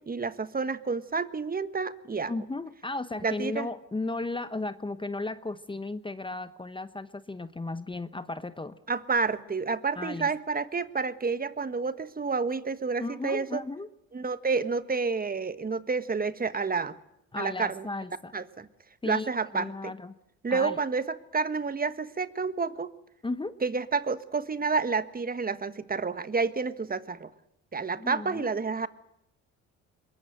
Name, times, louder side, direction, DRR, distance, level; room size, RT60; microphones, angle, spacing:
voice 1, 0.0-2.3 3.2-3.7 8.9-13.6 14.1-16.9 17.4-17.9 18.3-18.7 19.0-19.9 20.4-22.9 23.6-27.3 27.7-28.9, right 4 dB, 30° right, 13 dB, 1.4 m, -29 dB
voice 2, 2.3-8.8 10.0-10.3 13.0-13.9 17.3-18.3 19.0-20.1 20.5-20.8 23.2-23.6 27.9-28.6, left 2 dB, 15° left, 13 dB, 1.0 m, -35 dB
22.5 x 21.0 x 7.8 m, 0.81 s
supercardioid pair, 75°, 32 cm